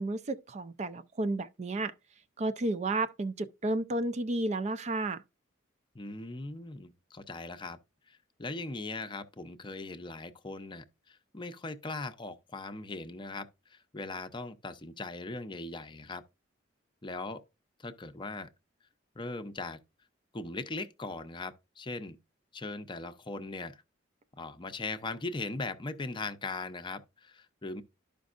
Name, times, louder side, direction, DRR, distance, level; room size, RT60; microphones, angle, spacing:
voice 1, 0.0-1.9 2.4-5.2, right 2 dB, 35° right, 0.4 m, -32 dB
voice 2, 5.9-7.8 8.1-16.2 17.0-17.4 17.8-18.5 19.2-19.8 20.3-22.2 22.5-23.8 24.4-27.8, left 3 dB, 25° left, 0.6 m, -39 dB
12.0 x 5.2 x 2.5 m
head